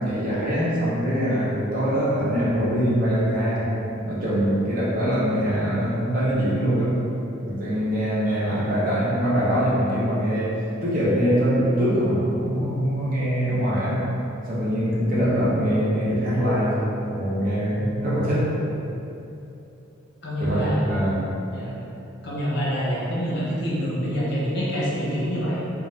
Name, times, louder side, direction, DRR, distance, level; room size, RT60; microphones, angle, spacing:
voice 1, 0.0-3.7 4.0-7.0 7.4-10.6 10.8-14.1 14.5-16.8 17.1-18.5 20.4-21.3, equal, 40° right, -8 dB, 0.7 m, -23 dB
voice 2, 20.2-20.8 21.5-21.7 22.2-25.6, equal, 55° left, -7 dB, 0.8 m, -26 dB
2.6 x 2.4 x 3.1 m, 2.8 s
head